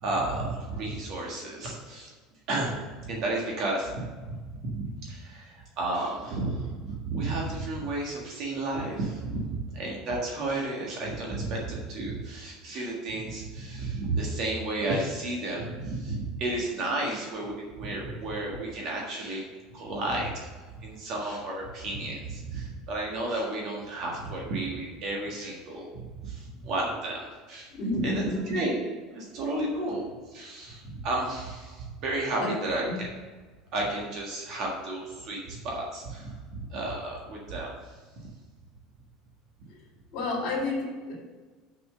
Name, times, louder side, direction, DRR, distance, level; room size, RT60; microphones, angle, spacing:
voice 1, 0.0-2.1 2.5-4.4 4.6-19.4 19.7-20.5 20.8-27.7 28.0-28.8 29.1-33.1 33.7-37.7, right 2 dB, 40° right, -2 dB, 1.6 m, -32 dB
voice 2, 27.7-28.6 32.4-32.5 32.9-33.0 40.1-41.1, left 2 dB, 35° left, -9 dB, 3.0 m, -30 dB
6.6 x 6.0 x 6.6 m, 1.4 s
cardioid pair, 175°, 0 cm